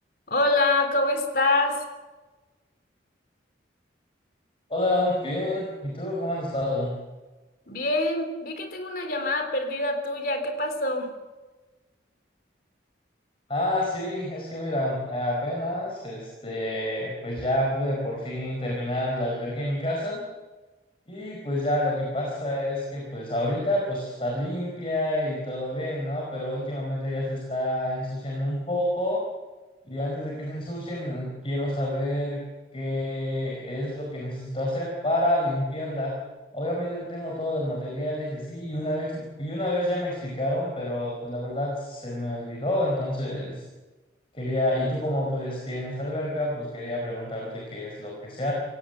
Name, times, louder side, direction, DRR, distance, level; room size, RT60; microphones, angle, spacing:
voice 1, 0.3-1.8 7.7-11.1, left 2 dB, 50° left, 6 dB, 3.7 m, -25 dB
voice 2, 4.7-6.9 13.5-20.2 21.1-29.2 29.8-32.4 32.7-36.1 36.5-43.6 44.3-48.5, left 1 dB, 30° left, -2 dB, 4.9 m, -28 dB
26.5 x 17.0 x 8.0 m, 1.2 s
head